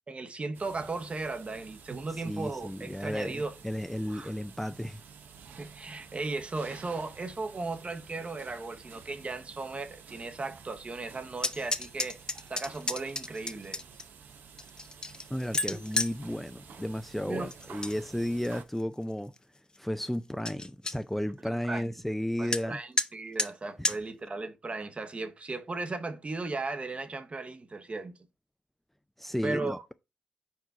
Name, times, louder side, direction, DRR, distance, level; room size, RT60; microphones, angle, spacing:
voice 1, 0.1-3.5 4.0-4.3 5.6-12.2 12.5-13.8 17.3-17.5 21.7-21.8 22.4-28.1 29.4-29.8, right 3 dB, 40° right, 1.0 m, -36 dB
sound 1, 0.5-18.6, right 6 dB, 70° right, 0.8 m, -51 dB
voice 2, 2.2-5.0 15.3-19.3 19.8-22.8 23.8-24.0 29.2-29.9, equal, 5° left, 0.4 m, -33 dB
sound 2, 11.4-14.0 14.6-16.2 17.5-17.9 18.3-18.8 19.3-19.4 19.7-19.8 20.1-20.2 20.5-21.0 22.5-22.6 23.0-23.1 23.4-23.5 23.8-24.0, left 2 dB, 25° left, 0.8 m, -31 dB
4.7 x 4.5 x 5.5 m
supercardioid pair, 50°, 3 cm